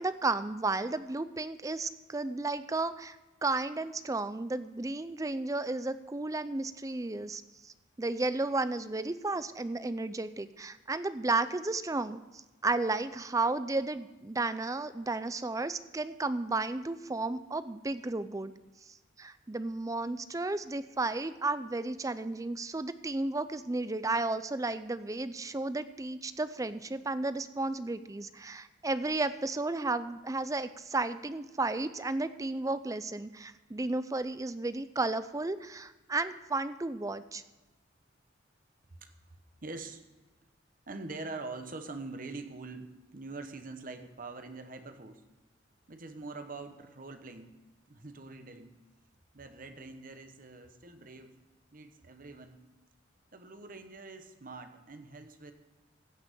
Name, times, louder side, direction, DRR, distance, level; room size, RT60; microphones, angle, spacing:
voice 1, 0.0-3.2 3.4-18.5 19.2-37.4, right 2 dB, 15° right, 13 dB, 0.4 m, -33 dB
voice 2, 38.9-40.0 40.9-45.2 45.9-47.5 47.9-48.7 49.3-51.3 51.7-52.6 53.3-55.5, right 3 dB, 45° right, 7 dB, 1.1 m, -44 dB
16.0 x 5.9 x 6.8 m, 1.2 s
head